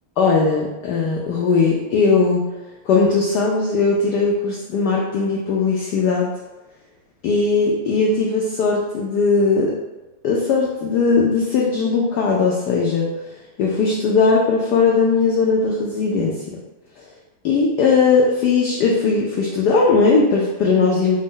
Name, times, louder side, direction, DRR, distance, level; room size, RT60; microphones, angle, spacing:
voice 1, 0.2-2.5 2.9-6.3 7.2-9.8 10.2-13.1 13.6-16.4 17.0-17.1 17.4-21.2, left 4 dB, 85° left, -2 dB, 0.9 m, -18 dB
5.0 x 2.1 x 3.7 m, 1.1 s
omnidirectional pair, 2.4 m